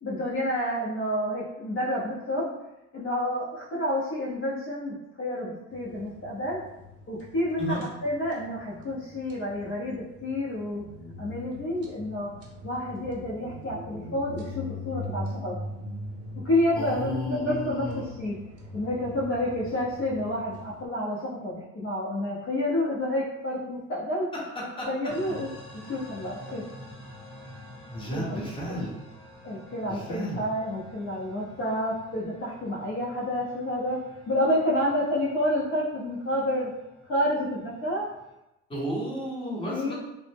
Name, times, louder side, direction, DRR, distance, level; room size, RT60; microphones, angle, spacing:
voice 1, 0.0-2.5 2.9-6.6 7.1-10.8 11.2-12.3 12.6-15.5 16.3-18.4 18.7-24.3 24.9-25.5 25.9-26.6 28.1-28.5 29.4-34.0 34.3-36.7 37.1-38.1 39.7-39.9, left 1 dB, 45° left, -6 dB, 0.6 m, -29 dB
sound 1, 5.7-20.9, left 1 dB, 55° right, 0.7 m, -42 dB
voice 2, 16.8-18.1 24.8-24.9 27.9-28.9 29.9-30.4 38.7-39.9, equal, 15° left, -5 dB, 0.9 m, -33 dB
sound 2, 25.1-38.3, left 1 dB, ahead, 1.2 m, -49 dB
2.0 x 2.0 x 3.2 m, 0.91 s
cardioid pair, 105°, 29 cm